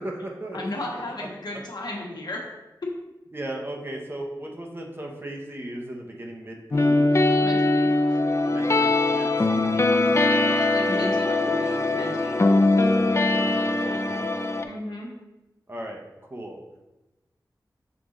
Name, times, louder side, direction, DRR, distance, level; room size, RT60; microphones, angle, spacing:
voice 1, 0.0-0.6 3.3-7.1 8.5-10.0 12.8-14.2 15.7-16.0 16.3-16.6, right 1 dB, 30° right, 0 dB, 1.1 m, -37 dB
voice 2, 0.5-2.4 7.4-8.2 10.4-12.7 14.6-15.1, left 1 dB, 65° left, -2 dB, 1.4 m, -35 dB
sound 1, 6.7-14.6, left 2 dB, 40° left, 0.5 m, -21 dB
6.2 x 4.6 x 3.8 m, 1.0 s
wide cardioid pair, 60°, 8 cm